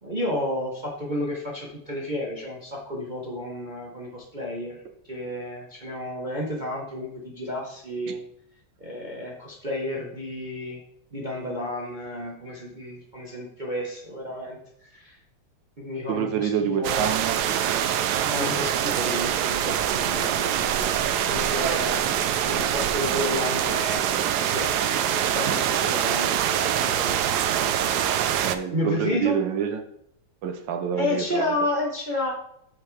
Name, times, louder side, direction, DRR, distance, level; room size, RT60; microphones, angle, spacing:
voice 1, 0.0-4.8 5.1-8.2 8.8-10.8 11.1-15.2 15.8-17.0 18.2-27.2 28.7-29.4 31.0-32.3, left 1 dB, 35° right, -2 dB, 0.8 m, -31 dB
voice 2, 16.1-17.3 28.4-29.8 30.4-31.6, right 8 dB, 70° right, 5 dB, 1.2 m, -27 dB
sound 1, 16.8-28.6, right 10 dB, 90° right, 0.8 m, -24 dB
8.3 x 5.7 x 3.2 m, 0.74 s
omnidirectional pair, 2.3 m